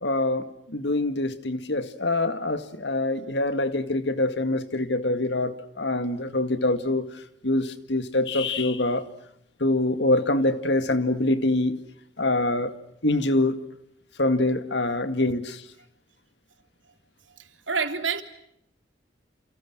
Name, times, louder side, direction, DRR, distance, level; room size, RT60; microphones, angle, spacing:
voice 1, 0.0-7.0 7.4-9.1 9.6-11.8 12.2-12.7 13.0-13.6 14.2-15.6, left 2 dB, 65° left, 2.1 m, -25 dB
voice 2, 17.4-18.2, right 5 dB, 90° right, 3.2 m, -28 dB
29.5 x 28.5 x 6.2 m
head